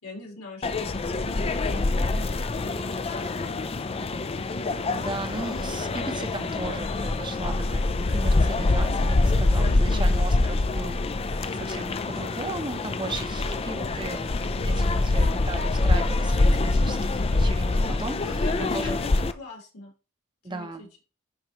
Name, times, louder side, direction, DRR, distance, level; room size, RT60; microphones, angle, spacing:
voice 1, 0.0-2.2 2.6-4.2 9.6-10.2 14.4-15.1 18.2-18.5 18.8-19.1 19.4-19.9 20.4-20.9, left 2 dB, 85° left, -3 dB, 3.8 m, -41 dB
sound 1, 0.6-19.3, left 2 dB, 25° left, 0.4 m, -25 dB
sound 2, 4.3-6.8, right 2 dB, 75° right, 2.0 m, -50 dB
voice 2, 4.9-7.8 8.1-11.0 11.5-19.0 20.4-20.9, right 2 dB, 20° right, 7 dB, 0.8 m, -36 dB
11.0 x 4.4 x 3.0 m, 0.33 s
head